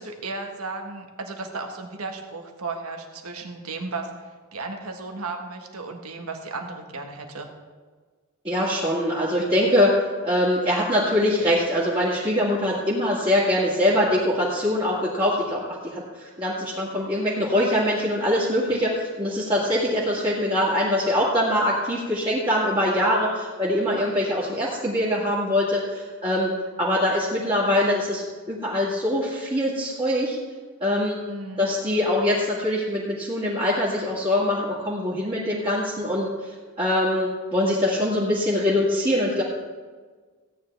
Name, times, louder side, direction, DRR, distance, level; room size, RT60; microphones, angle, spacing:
voice 1, 0.0-4.1 4.5-7.5 31.3-31.7, right 3 dB, 85° right, 4 dB, 1.4 m, -34 dB
voice 2, 8.4-10.0 10.2-26.5 26.8-30.4 30.8-31.2 31.6-36.3 36.8-39.4, left 1 dB, 25° right, -8 dB, 1.9 m, -23 dB
16.0 x 9.4 x 3.4 m, 1.5 s
head